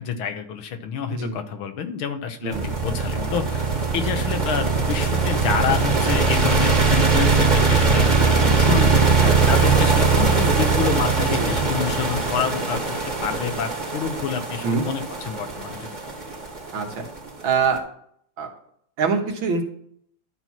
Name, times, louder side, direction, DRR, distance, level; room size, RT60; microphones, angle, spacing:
voice 1, 0.0-13.0 13.2-15.9, left 7 dB, 85° left, 7 dB, 1.9 m, -28 dB
sound 1, 2.5-17.6, right 4 dB, 25° right, 1.8 m, -20 dB
voice 2, 16.7-17.1 17.4-17.8 18.4-18.5 19.0-19.6, right 5 dB, 75° right, 3 dB, 2.2 m, -23 dB
12.5 x 4.5 x 5.8 m, 0.66 s
omnidirectional pair, 2.2 m